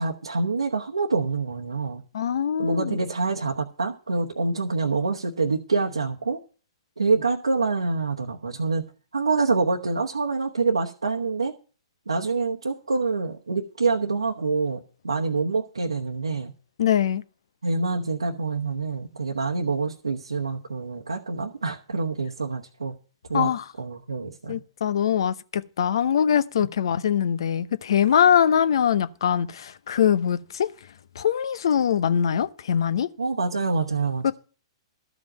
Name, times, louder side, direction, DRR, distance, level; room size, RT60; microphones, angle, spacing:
voice 1, 0.0-2.0 2.6-6.4 7.0-8.8 9.1-11.5 12.1-16.5 17.6-22.9 23.3-24.6 26.6-26.7 33.2-34.3, right 4 dB, 90° right, 1.1 m, -26 dB
voice 2, 2.1-2.9 16.8-17.2 23.3-23.6 24.5-30.7 31.2-33.1 34.2-34.3, left 8 dB, 65° left, 0.8 m, -22 dB
13.0 x 5.2 x 9.1 m
hypercardioid pair, 120°, 3 cm